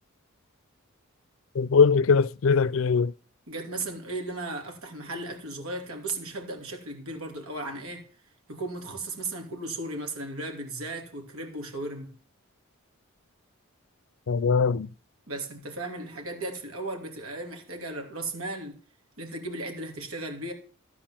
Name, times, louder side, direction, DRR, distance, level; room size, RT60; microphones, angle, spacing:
voice 1, 1.6-3.1 14.3-14.9, left 5 dB, 65° left, 0.4 m, -21 dB
voice 2, 3.5-8.1 8.5-12.2 15.3-18.8 19.2-20.5, right 2 dB, 85° right, 2.7 m, -36 dB
13.5 x 4.7 x 7.4 m
head